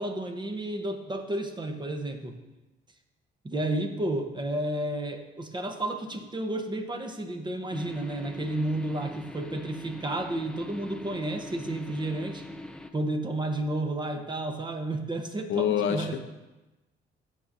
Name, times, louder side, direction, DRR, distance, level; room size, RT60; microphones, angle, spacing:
voice 1, 0.0-2.3 3.4-12.4 12.9-16.2, right 1 dB, 20° right, 5 dB, 1.0 m, -31 dB
sound 1, 7.7-12.9, left 2 dB, 5° left, 0.5 m, -42 dB
voice 2, 15.5-16.2, left 8 dB, 80° left, 7 dB, 0.7 m, -26 dB
13.5 x 5.9 x 2.7 m, 1.1 s
cardioid pair, 90°, 20 cm